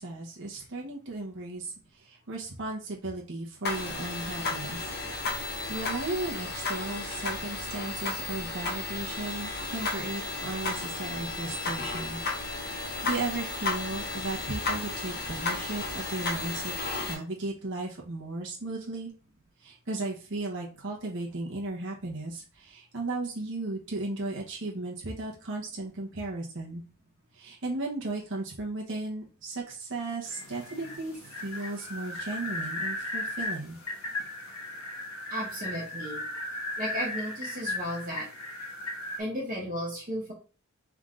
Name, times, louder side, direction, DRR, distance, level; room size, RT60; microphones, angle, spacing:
voice 1, 0.0-4.9 5.2-12.2 12.6-16.7 17.1-19.1 19.6-26.8 27.3-33.8, right 2 dB, 55° right, -2 dB, 1.1 m, -35 dB
sound 1, 3.6-17.1, left 3 dB, 45° left, 1.2 m, -33 dB
sound 2, 30.2-39.2, left 2 dB, 70° left, 1.3 m, -36 dB
voice 2, 35.3-36.2 36.8-38.3 39.2-40.3, equal, 40° right, -4 dB, 1.4 m, -34 dB
3.7 x 3.6 x 3.8 m, 0.38 s
head